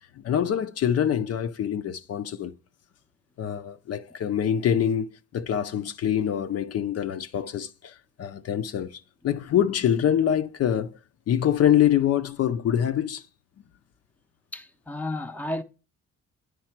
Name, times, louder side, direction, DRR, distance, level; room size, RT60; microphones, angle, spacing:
voice 1, 0.2-2.5 3.4-11.0 11.3-13.2, left 9 dB, 55° left, 0.5 m, -25 dB
voice 2, 14.5-15.6, left 1 dB, 5° left, 0.6 m, -32 dB
9.4 x 3.2 x 5.9 m
cardioid pair, 90°, 30 cm